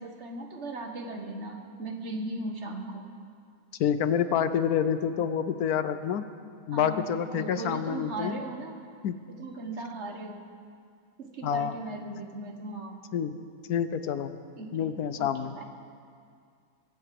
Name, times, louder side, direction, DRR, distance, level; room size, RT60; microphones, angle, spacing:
voice 1, 0.0-3.1 6.7-8.8 9.3-10.4 11.2-13.0 14.6-14.9 15.2-15.6, right 2 dB, 50° right, 4 dB, 1.5 m, -38 dB
voice 2, 3.8-6.2 6.7-8.4 9.0-9.1 11.4-11.7 13.1-13.3 13.7-14.3 14.7-15.6, left 8 dB, 75° left, 11 dB, 1.2 m, -27 dB
23.5 x 8.0 x 7.6 m, 2.2 s
omnidirectional pair, 1.6 m